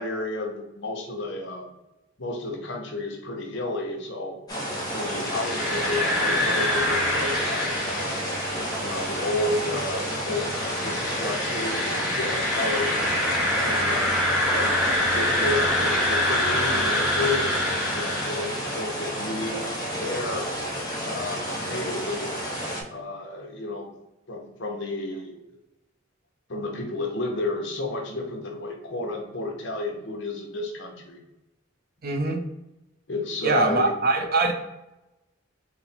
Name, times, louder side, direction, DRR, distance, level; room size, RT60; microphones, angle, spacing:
voice 1, 0.0-1.6 2.2-4.4 4.9-8.2 8.8-13.0 13.6-14.1 14.5-14.7 15.1-19.6 20.0-20.5 21.0-22.3 22.9-23.9 24.3-25.4 26.5-31.2 33.1-33.9, left 2 dB, 60° left, 0 dB, 0.9 m, -31 dB
sound 1, 4.5-22.8, equal, 20° left, 0.9 m, -31 dB
sound 2, 5.1-19.0, left 1 dB, 5° right, 1.2 m, -26 dB
voice 2, 32.0-32.4 33.4-34.5, right 3 dB, 45° right, 4 dB, 0.5 m, -22 dB
4.2 x 2.1 x 4.1 m, 0.96 s
head